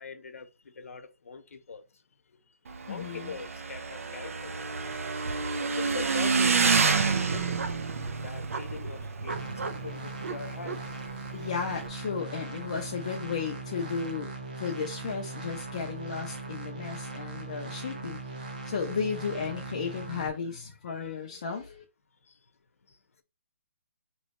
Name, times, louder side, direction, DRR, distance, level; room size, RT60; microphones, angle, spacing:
voice 1, 0.0-1.8 2.8-4.6 5.7-7.6 8.2-10.8 20.9-21.1, left 5 dB, 80° left, 0.8 m, -42 dB
Motorcycle / Engine, 2.7-11.9, right 5 dB, 75° right, 0.6 m, -29 dB
voice 2, 2.9-3.3 11.3-21.8, left 6 dB, 30° left, 0.5 m, -34 dB
sound 1, 9.3-20.3, right 3 dB, 35° right, 0.7 m, -39 dB
5.2 x 3.1 x 2.9 m
hypercardioid pair, 180°, 8 cm